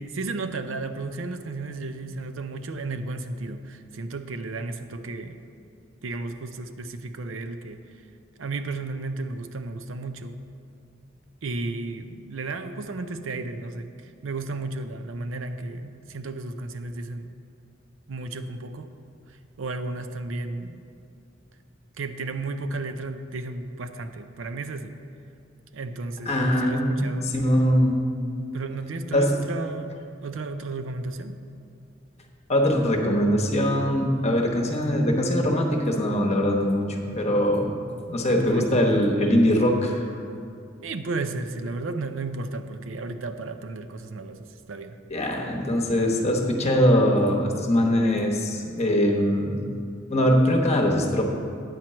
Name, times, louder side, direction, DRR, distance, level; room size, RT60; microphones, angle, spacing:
voice 1, 0.0-5.4 6.0-7.8 8.4-10.4 11.4-17.3 18.1-18.9 19.3-20.9 22.0-24.9 25.7-27.3 28.5-31.4 38.3-38.9 40.8-45.0, right 3 dB, 85° right, 9 dB, 0.5 m, -33 dB
voice 2, 26.3-28.1 29.1-29.3 32.5-37.7 38.1-40.0 45.1-49.6 50.1-51.2, equal, 35° left, 1 dB, 1.0 m, -22 dB
9.3 x 4.5 x 7.4 m, 2.5 s
head